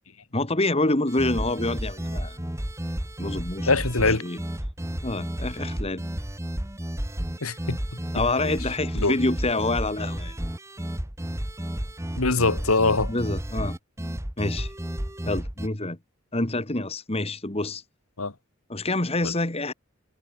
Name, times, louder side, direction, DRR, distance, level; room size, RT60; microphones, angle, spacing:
voice 1, 0.3-2.4 3.2-3.7 4.2-4.4 5.0-6.0 8.1-10.3 13.1-13.8 14.4-14.7 15.3-16.0 16.3-17.8 18.7-19.7, left 2 dB, 30° left, 2.0 m, -27 dB
sound 1, 1.1-15.7, equal, 15° right, 1.5 m, -32 dB
voice 2, 3.7-4.2 7.4-8.0 8.4-8.6 8.9-9.1 12.2-13.1 18.2-18.3 19.2-19.3, left 3 dB, 80° left, 2.5 m, -23 dB
head